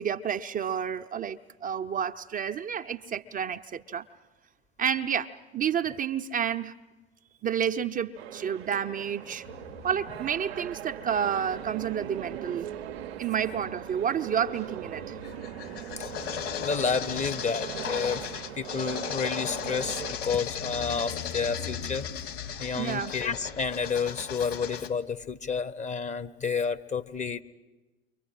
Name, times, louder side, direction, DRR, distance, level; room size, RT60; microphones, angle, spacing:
voice 1, 0.0-4.0 4.8-6.7 7.4-9.4 9.8-12.7 13.2-15.2 22.8-23.1, right 8 dB, 25° right, 7 dB, 0.7 m, -30 dB
sound 1, 8.2-20.1, right 12 dB, 65° right, 0.7 m, -40 dB
sound 2, 9.4-23.7, left 6 dB, 65° left, 5.0 m, -46 dB
sound 3, 15.2-24.9, left 8 dB, 45° left, 1.8 m, -36 dB
voice 2, 16.6-18.3 18.5-22.1 22.6-27.4, left 5 dB, 20° left, 13 dB, 1.0 m, -30 dB
29.5 x 24.0 x 5.7 m, 1.1 s
figure-of-eight pair, 70°, 33 cm